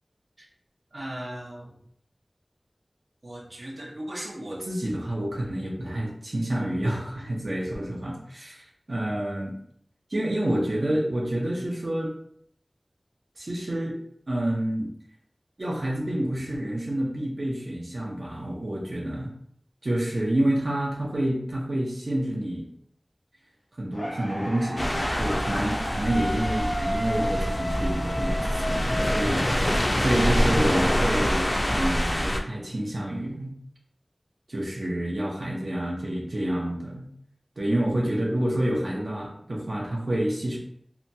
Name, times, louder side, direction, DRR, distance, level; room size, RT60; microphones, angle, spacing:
voice 1, 0.9-1.7 3.2-9.6 10.1-12.1 13.4-14.0 14.3-14.9 15.6-19.3 19.8-22.6 23.8-33.5 34.5-37.1 37.6-40.6, right 1 dB, 70° right, -3 dB, 0.6 m, -28 dB
sound 1, 23.9-30.0, equal, 80° left, 0.7 m, -32 dB
sound 2, 24.8-32.4, equal, 40° left, 0.4 m, -25 dB
2.8 x 2.2 x 2.7 m, 0.69 s
wide cardioid pair, 55°, 0 cm